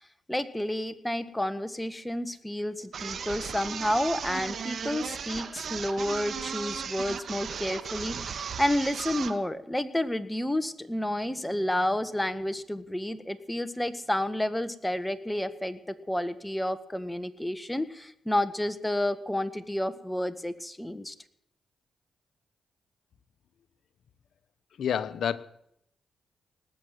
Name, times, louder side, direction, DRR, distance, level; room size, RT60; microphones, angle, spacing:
voice 1, 0.3-21.1, left 1 dB, 10° left, 12 dB, 1.6 m, -30 dB
sound 1, 2.9-9.4, right 6 dB, 65° right, 1.3 m, -36 dB
voice 2, 24.8-25.4, left 8 dB, 75° left, 15 dB, 0.9 m, -28 dB
19.5 x 7.9 x 9.3 m, 0.75 s
supercardioid pair, 50°, 0 cm